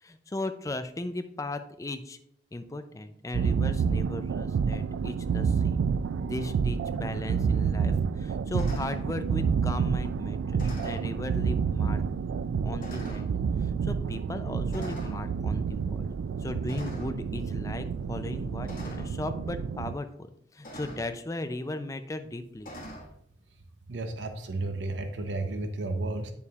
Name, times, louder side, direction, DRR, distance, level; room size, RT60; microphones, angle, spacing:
voice 1, 0.0-2.2 2.5-5.8 6.2-12.0 12.6-16.1 16.4-22.7, left 2 dB, 15° left, 9 dB, 0.4 m, -37 dB
sound 1, 3.3-19.9, right 6 dB, 90° right, 0.3 m, -29 dB
sound 2, 6.4-6.5 8.6-9.0 10.6-11.1 11.9-12.0 12.8-13.3 14.7-15.2 16.7-17.2 18.6-19.1 20.6-21.1 22.6-23.1, equal, 45° left, 1.6 m, -43 dB
voice 2, 23.9-26.3, right 2 dB, 75° right, 7 dB, 0.7 m, -32 dB
8.6 x 6.9 x 2.4 m, 0.71 s
head